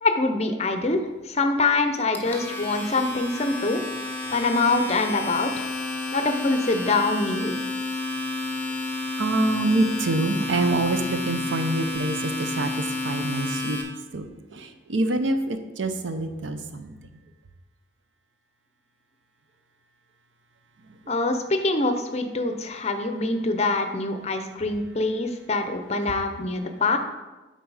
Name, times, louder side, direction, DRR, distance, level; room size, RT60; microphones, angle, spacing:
voice 1, 0.0-5.7 6.1-7.6 21.1-27.0, left 3 dB, 35° left, 7 dB, 0.6 m, -25 dB
Domestic sounds home sounds, 1.9-13.8, left 2 dB, 10° left, 0.9 m, -30 dB
voice 2, 9.2-13.8 14.1-16.9, right 2 dB, 85° right, 8 dB, 0.7 m, -26 dB
9.2 x 4.1 x 4.8 m, 1.1 s
head